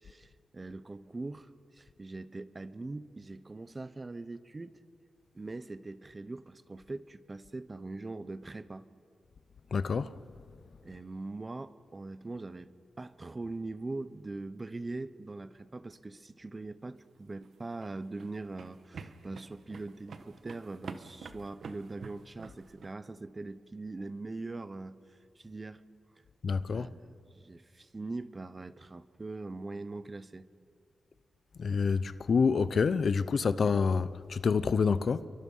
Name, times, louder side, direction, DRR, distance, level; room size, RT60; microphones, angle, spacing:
voice 1, 0.0-4.8 5.3-8.9 10.8-12.7 13.0-25.8 26.7-30.5, right 2 dB, 30° right, 1.0 m, -42 dB
voice 2, 9.7-10.1 26.4-26.9 31.6-35.3, left 5 dB, 60° left, 0.8 m, -27 dB
sound 1, 17.3-22.9, right 5 dB, 70° right, 1.4 m, -48 dB
29.5 x 23.5 x 5.6 m
cardioid pair, 75°, 0 cm